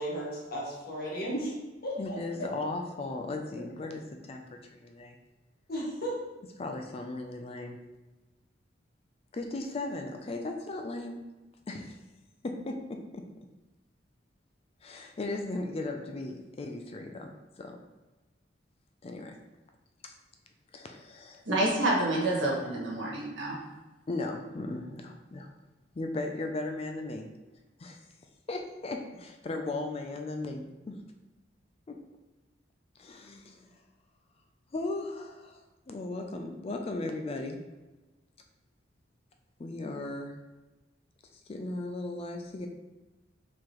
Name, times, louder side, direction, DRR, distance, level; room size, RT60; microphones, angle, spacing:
voice 1, 0.0-1.5 1.8-2.2 5.7-6.1, equal, 55° left, -4 dB, 1.3 m, -34 dB
voice 2, 2.0-5.2 6.4-7.8 9.3-11.2 11.7-12.0 12.4-13.2 14.8-17.3 17.6-17.8 19.0-19.4 20.0-20.1 20.7-21.4 24.1-25.5 25.9-27.3 27.8-28.0 28.5-31.0 31.9-32.0 33.0-33.7 34.7-37.6 39.6-40.3 41.5-42.7, left 2 dB, 30° left, 4 dB, 0.4 m, -37 dB
voice 3, 21.4-23.6, right 1 dB, 85° right, -4 dB, 1.5 m, -28 dB
4.8 x 3.8 x 3.0 m, 1.1 s
head